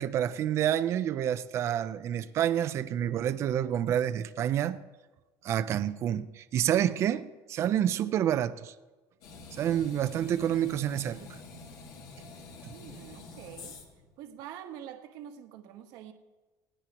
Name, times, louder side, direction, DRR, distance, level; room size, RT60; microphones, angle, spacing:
voice 1, 0.0-4.8 5.4-8.7 9.5-11.4 12.6-12.7, right 10 dB, 35° right, 13 dB, 0.6 m, -28 dB
sound 1, 9.2-14.1, left 3 dB, 60° left, 3.0 m, -47 dB
voice 2, 12.7-13.8 14.2-16.1, right 10 dB, 60° right, 5 dB, 1.3 m, -45 dB
20.0 x 17.0 x 3.0 m, 1.2 s
cardioid pair, 170°, 8 cm